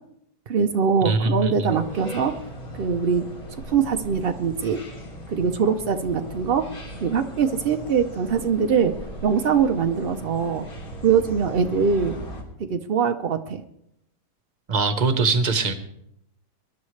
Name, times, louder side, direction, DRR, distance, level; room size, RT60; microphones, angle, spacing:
voice 1, 0.5-2.3 2.7-3.3 3.7-4.8 5.3-6.7 7.0-9.0 9.2-10.7 11.0-12.1 12.6-13.6, right 6 dB, 80° right, 6 dB, 0.5 m, -22 dB
voice 2, 1.0-1.8 14.7-15.7, right 3 dB, 30° right, 8 dB, 0.9 m, -22 dB
sound 1, 1.7-12.4, equal, 55° left, 3.4 m, -38 dB
23.0 x 11.5 x 3.2 m, 0.77 s
omnidirectional pair, 1.9 m